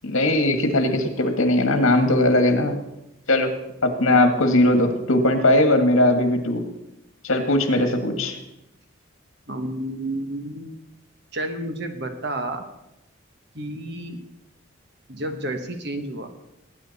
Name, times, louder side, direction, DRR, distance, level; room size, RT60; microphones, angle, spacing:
voice 1, 0.0-2.8 3.3-3.5 3.8-6.6 7.2-8.4, left 1 dB, 80° left, 6 dB, 1.8 m, -19 dB
voice 2, 9.5-10.8 11.3-12.7 13.5-14.2 15.1-16.3, right 1 dB, 55° right, 6 dB, 1.5 m, -30 dB
19.0 x 9.2 x 4.2 m, 0.89 s
head